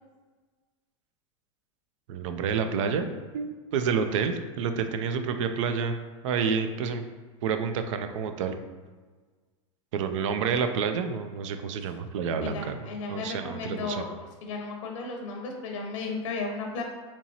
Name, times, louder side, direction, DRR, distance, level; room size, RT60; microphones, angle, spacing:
voice 1, 2.1-3.1 3.3-5.9 6.2-7.0 7.4-8.6 9.9-14.0, right 6 dB, 75° right, 8 dB, 0.4 m, -29 dB
voice 2, 12.4-14.1 14.4-16.8, left 4 dB, 85° left, 2 dB, 0.7 m, -34 dB
4.3 x 2.9 x 2.8 m, 1.4 s
supercardioid pair, 130°, 16 cm